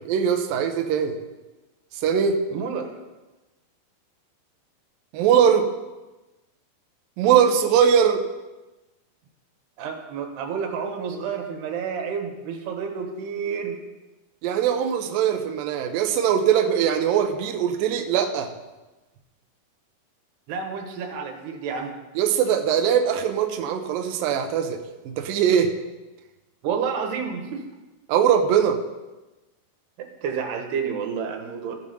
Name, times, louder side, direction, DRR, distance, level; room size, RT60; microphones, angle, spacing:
voice 1, 0.0-1.2 2.0-2.4 5.1-5.7 7.2-8.2 14.4-18.5 22.2-24.8 25.1-25.7 28.1-28.8, right 8 dB, 85° right, 5 dB, 2.0 m, -21 dB
voice 2, 2.5-2.9 9.8-13.8 20.5-21.9 26.6-27.6 30.0-31.8, right 6 dB, 70° right, 3 dB, 3.1 m, -30 dB
16.0 x 5.5 x 5.4 m, 1.1 s
omnidirectional pair, 5.2 m